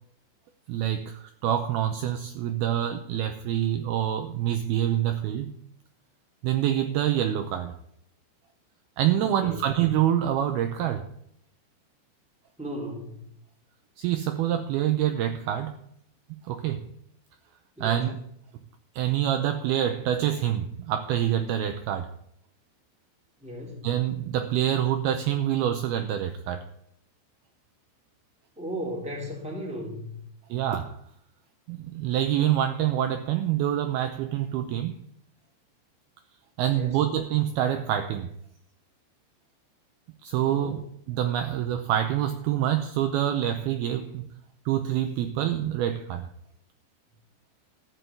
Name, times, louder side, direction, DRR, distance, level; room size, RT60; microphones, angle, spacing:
voice 1, 0.7-5.5 6.4-7.8 9.0-11.1 14.0-15.8 16.5-16.9 17.8-18.2 19.0-22.1 23.8-26.6 30.5-31.0 31.7-35.0 36.6-38.3 40.2-44.3 44.7-46.3, right 11 dB, 85° right, 2.2 m, -26 dB
voice 2, 9.2-9.6 12.6-13.3 17.8-18.1 23.4-23.8 28.6-30.2 36.7-37.0 40.4-40.8, equal, ahead, 2.3 m, -36 dB
13.5 x 6.2 x 8.3 m
omnidirectional pair, 5.3 m